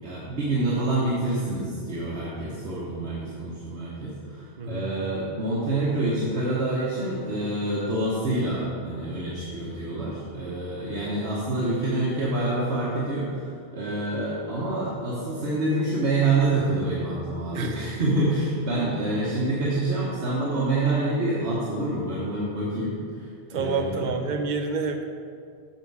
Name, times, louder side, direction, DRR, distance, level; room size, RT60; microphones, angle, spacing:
voice 1, 0.0-24.1, right 2 dB, 85° right, -7 dB, 1.5 m, -27 dB
voice 2, 4.6-4.9 17.5-17.8 23.5-25.0, right 4 dB, 50° right, 5 dB, 0.8 m, -28 dB
7.5 x 6.6 x 4.7 m, 2.2 s
omnidirectional pair, 1.1 m